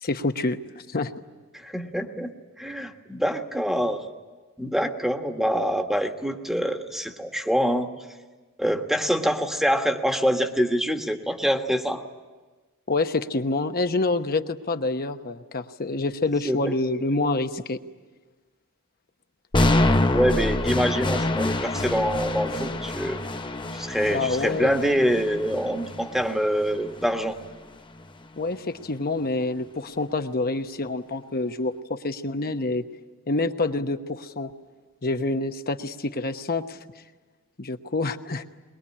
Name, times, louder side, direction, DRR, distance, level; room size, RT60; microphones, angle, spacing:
voice 1, 0.0-0.6 0.9-1.1 12.9-17.8 24.1-24.7 28.4-32.8 33.3-34.5 35.0-36.8 37.6-38.4, left 2 dB, 45° left, 7 dB, 1.1 m, -27 dB
voice 2, 1.5-2.3 2.6-4.0 4.6-7.9 8.6-12.0 16.4-16.7 20.1-23.2 23.7-27.4, equal, ahead, 5 dB, 1.5 m, -25 dB
sound 1, 19.5-27.6, left 1 dB, 20° left, 0.8 m, -26 dB
22.5 x 22.0 x 9.9 m, 1.3 s
head